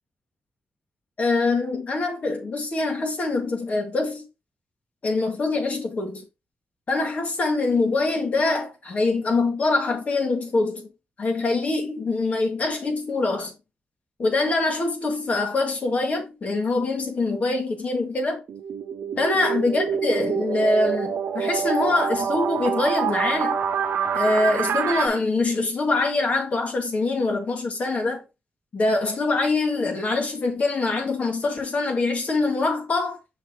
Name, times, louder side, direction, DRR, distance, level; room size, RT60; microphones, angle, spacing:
voice 1, 1.2-4.2 5.0-6.2 6.9-10.9 11.2-13.5 14.2-18.4 19.2-23.6 24.1-28.2 28.7-33.2, left 3 dB, 40° left, 2.0 m, -24 dB
sound 1, 18.5-25.1, right 7 dB, 80° right, 0.8 m, -26 dB
6.4 x 6.2 x 2.9 m
wide cardioid pair, 170°, 4 cm